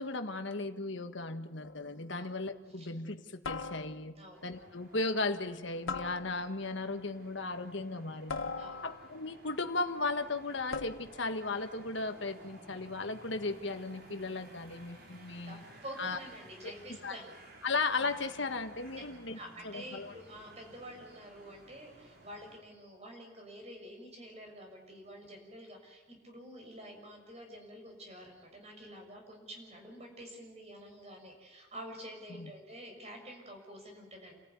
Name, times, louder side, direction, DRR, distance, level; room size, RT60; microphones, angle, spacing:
voice 1, 0.0-4.1 4.4-8.5 8.8-15.6 16.0-16.2 16.6-16.7 17.0-17.2 17.6-19.4 19.6-20.1 32.4-32.5, left 3 dB, 65° left, 7 dB, 1.7 m, -36 dB
sound 1, 1.6-2.0 3.4-4.2 5.9-6.7 8.3-9.2 10.7-11.3, left 4 dB, 85° left, 1.2 m, -40 dB
voice 2, 4.2-4.5 8.5-8.8 15.4-17.3 19.3-34.4, equal, 30° right, 2 dB, 6.6 m, -48 dB
sound 2, 4.3-22.6, right 1 dB, 50° right, 4.3 m, -56 dB
29.5 x 14.5 x 9.5 m, 1.4 s
head